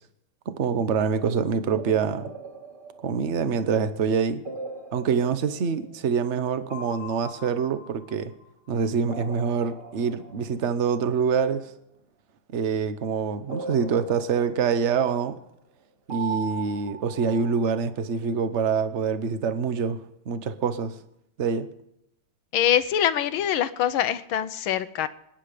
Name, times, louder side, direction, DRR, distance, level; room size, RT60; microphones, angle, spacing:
voice 1, 0.5-2.3 3.0-4.4 4.9-8.3 8.7-11.7 12.5-15.4 16.1-20.0 20.3-20.9 21.4-21.7, right 6 dB, 50° right, 11 dB, 0.8 m, -25 dB
sound 1, 1.2-1.3 1.8-3.8 4.4-6.4 6.7-8.7 9.1-10.9 13.5-15.4 16.1-18.1, right 3 dB, 25° right, 1.9 m, -40 dB
voice 2, 22.5-25.1, left 10 dB, 75° left, 13 dB, 1.6 m, -24 dB
26.5 x 10.0 x 5.1 m, 0.79 s
omnidirectional pair, 2.3 m